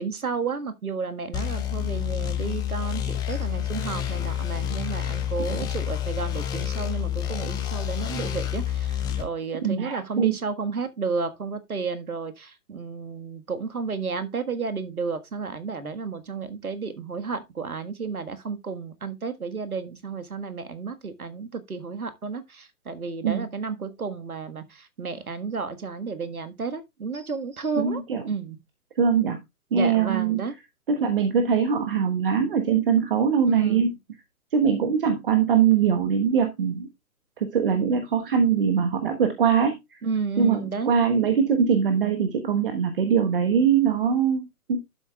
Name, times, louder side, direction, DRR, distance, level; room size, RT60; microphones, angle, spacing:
voice 1, 0.0-28.6 29.7-30.6 33.5-33.9 40.0-40.9, right 5 dB, 70° right, 1.6 m, -32 dB
sound 1, 1.3-9.2, left 10 dB, 10° left, 1.1 m, -29 dB
voice 2, 9.6-10.3 23.2-23.5 27.8-28.2 29.0-29.4 29.7-30.4 30.9-33.9 34.5-36.9 37.4-39.8 40.4-44.8, right 7 dB, 35° right, 1.3 m, -22 dB
11.5 x 7.8 x 2.3 m
figure-of-eight pair, 130°, 45 cm